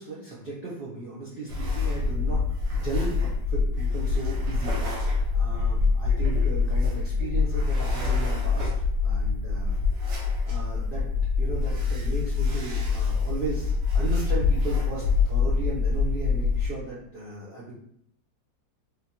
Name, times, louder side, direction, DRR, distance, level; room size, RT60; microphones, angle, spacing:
voice 1, 0.0-4.8 5.3-8.7 9.0-9.8 10.4-11.1 11.4-17.7, right 3 dB, 45° right, -7 dB, 0.7 m, -36 dB
sound 1, 1.5-16.7, left 4 dB, 90° right, 1.8 m, -25 dB
4.0 x 3.7 x 2.8 m, 0.70 s
omnidirectional pair, 2.0 m